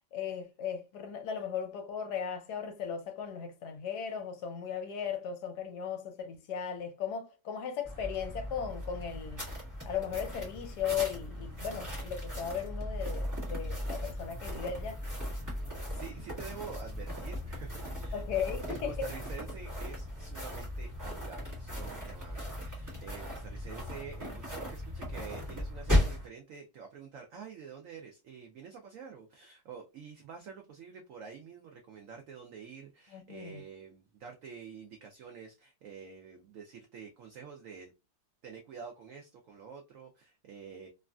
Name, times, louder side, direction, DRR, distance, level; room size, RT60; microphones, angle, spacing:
voice 1, 0.1-9.5 9.8-15.0 18.1-18.9 33.1-33.6, left 8 dB, 70° left, 1.1 m, -37 dB
sound 1, 7.8-26.3, left 1 dB, 15° right, 0.8 m, -37 dB
voice 2, 15.9-18.2 18.7-37.9 38.4-40.9, right 6 dB, 80° right, 0.7 m, -48 dB
3.1 x 2.4 x 2.2 m
omnidirectional pair, 2.0 m